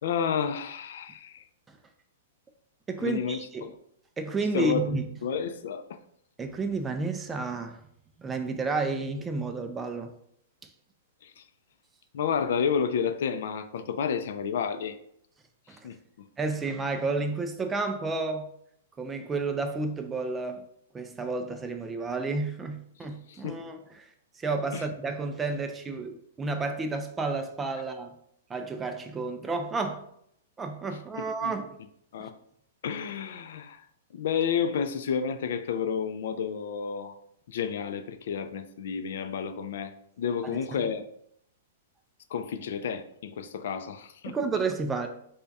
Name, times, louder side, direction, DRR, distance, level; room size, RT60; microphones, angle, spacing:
voice 1, 0.0-1.4 3.0-3.7 4.5-4.9 5.2-5.9 11.2-11.4 12.1-15.0 15.8-16.3 23.3-23.6 24.7-24.8 31.2-31.5 32.1-32.3 32.8-33.8 34.1-37.2 37.5-41.1 42.3-44.4, left 6 dB, 70° left, 10 dB, 0.4 m, -31 dB
voice 2, 2.9-3.7 4.2-5.1 6.4-7.8 8.2-10.1 15.7-15.8 16.4-18.5 19.0-20.6 20.9-24.1 24.4-28.2 28.5-30.1 30.6-31.8 32.2-32.3 40.4-40.6 44.3-45.1, right 3 dB, 15° right, 6 dB, 0.3 m, -31 dB
3.4 x 2.2 x 4.0 m, 0.70 s
hypercardioid pair, 150°, 0 cm